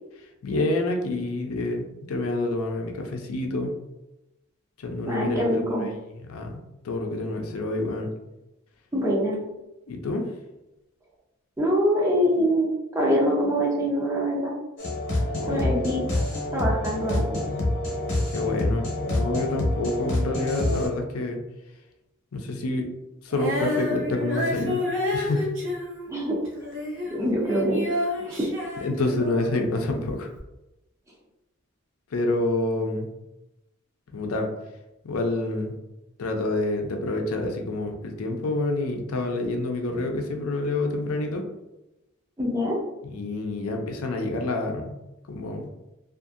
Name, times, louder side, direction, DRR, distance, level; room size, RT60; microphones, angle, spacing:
voice 1, 0.4-3.7 4.8-5.9 6.3-6.6 6.8-8.1 9.9-10.3 15.4-15.8 18.3-21.4 22.3-22.9 23.2-24.8 25.1-25.5 28.8-30.3 32.1-33.1 34.1-34.5 35.0-35.7 36.2-41.4 43.0-45.0 45.3-45.6, left 2 dB, 90° left, 3 dB, 0.5 m, -28 dB
voice 2, 5.1-5.9 8.9-9.4 11.6-14.6 15.5-16.0 16.5-17.2 26.1-26.4 27.1-27.8 28.2-28.5 42.4-42.8, equal, 15° right, -4 dB, 0.4 m, -24 dB
sound 1, 14.8-20.9, left 1 dB, 55° left, 0.8 m, -27 dB
Female singing, 23.3-29.7 30.4-30.5, left 1 dB, 60° right, 0.7 m, -30 dB
2.6 x 2.5 x 2.5 m, 0.95 s
head